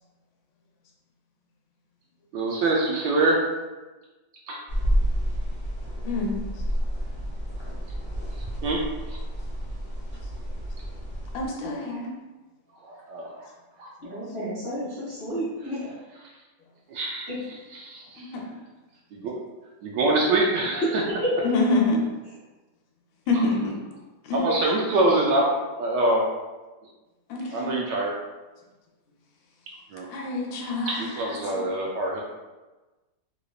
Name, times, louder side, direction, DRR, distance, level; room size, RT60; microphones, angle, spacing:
voice 1, 2.3-3.4 4.5-4.6 8.6-8.8 9.1-9.2 12.8-13.4 13.8-13.9 16.9-17.3 17.7-18.3 19.1-19.3 19.8-21.0 24.3-26.2 27.5-28.1 29.9-30.1 31.2-32.2, right 2 dB, 75° right, -2 dB, 1.1 m, -24 dB
sound 1, 4.7-11.5, equal, 10° left, 0.5 m, -29 dB
voice 2, 6.0-6.4 11.3-12.1 14.0-14.1 18.2-18.6 21.4-22.0 23.3-23.7 24.2-24.4 27.3-27.8 30.1-31.7, left 2 dB, 80° left, 0 dB, 1.4 m, -27 dB
voice 3, 14.0-15.9 17.3-17.4 21.2-21.3, equal, 45° right, -10 dB, 2.0 m, -31 dB
3.8 x 3.1 x 2.3 m, 1.2 s
omnidirectional pair, 2.1 m